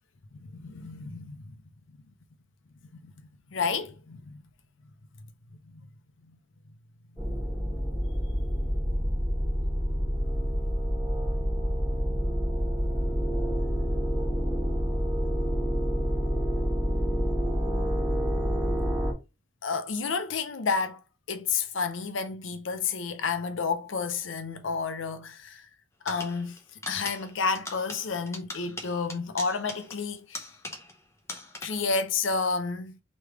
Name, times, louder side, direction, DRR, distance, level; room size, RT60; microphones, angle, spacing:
voice 1, 0.4-1.5 3.0-3.1 3.5-4.4 19.6-21.0 21.3-25.6 26.0-26.6 26.9-30.4 31.6-33.0, left 5 dB, 85° left, 0.6 m, -30 dB
sound 1, 7.2-19.1, equal, 5° right, 1.4 m, -28 dB
sound 2, 26.1-31.0 31.3-32.0, left 2 dB, 15° left, 0.8 m, -41 dB
3.3 x 3.1 x 4.7 m
head